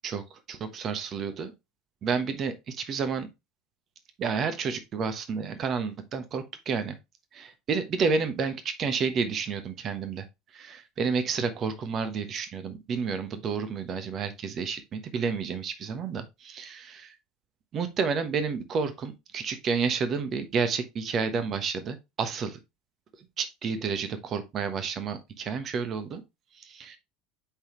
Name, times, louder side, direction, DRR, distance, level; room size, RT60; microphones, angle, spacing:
voice 1, 0.5-1.5 2.0-3.3 4.2-6.9 7.3-10.2 10.5-17.1 17.7-22.6 23.4-26.2 26.6-27.0, right 5 dB, 40° right, 1.1 m, -30 dB
8.6 x 4.1 x 3.0 m
hypercardioid pair, 75°, 0 cm